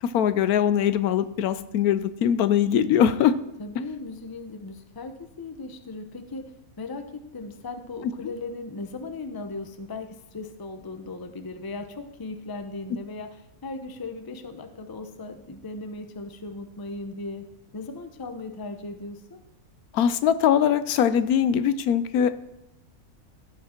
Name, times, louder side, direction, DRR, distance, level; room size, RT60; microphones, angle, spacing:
voice 1, 0.0-3.3 19.9-22.3, left 9 dB, 80° left, 13 dB, 1.1 m, -21 dB
voice 2, 3.6-17.5 17.7-19.4, left 3 dB, 20° left, 8 dB, 0.6 m, -37 dB
15.5 x 6.1 x 4.4 m, 0.88 s
omnidirectional pair, 1.6 m